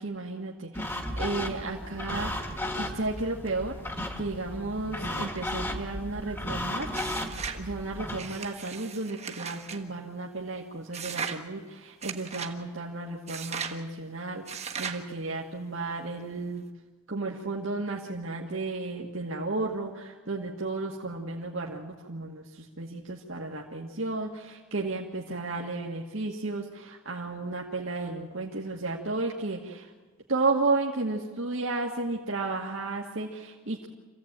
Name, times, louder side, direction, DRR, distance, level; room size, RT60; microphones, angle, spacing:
voice 1, 0.0-2.5 2.8-3.7 4.2-7.2 7.5-16.6 17.1-29.9 30.3-33.9, right 3 dB, 65° right, -2 dB, 1.9 m, -33 dB
sound 1, 0.7-8.2, left 1 dB, 10° left, 1.7 m, -35 dB
sound 2, 6.9-7.6 8.2-9.8 10.9-11.4 12.0-12.5 13.3-13.8 14.5-15.0, right 6 dB, 30° right, 1.4 m, -37 dB
27.0 x 16.0 x 8.9 m, 1.3 s
head